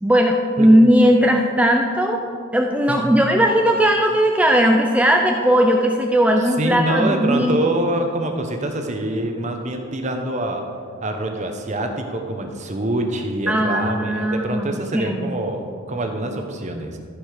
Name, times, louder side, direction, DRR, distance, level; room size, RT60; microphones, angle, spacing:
voice 1, 0.0-2.2 2.5-7.7 13.5-15.4, equal, 5° right, 2 dB, 0.4 m, -17 dB
voice 2, 2.9-3.3 6.4-10.6 11.0-17.0, right 1 dB, 35° right, 4 dB, 0.8 m, -25 dB
14.5 x 5.0 x 4.9 m, 2.2 s
head